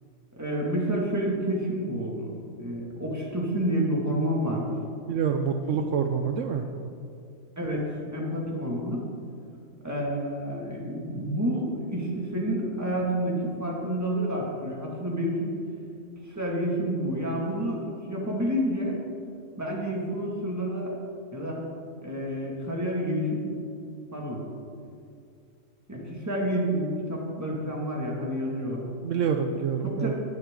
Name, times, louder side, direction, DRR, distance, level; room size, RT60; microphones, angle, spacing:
voice 1, 0.4-4.7 7.6-9.0 9.8-15.6 16.2-19.0 19.6-21.0 21.3-21.6 22.0-23.6 24.1-24.4 25.9-28.8 29.8-30.1, equal, 10° right, -3 dB, 2.1 m, -29 dB
voice 2, 5.1-6.6 29.0-30.1, right 6 dB, 70° right, 6 dB, 0.9 m, -27 dB
19.0 x 7.7 x 3.8 m, 2.4 s
omnidirectional pair, 1.4 m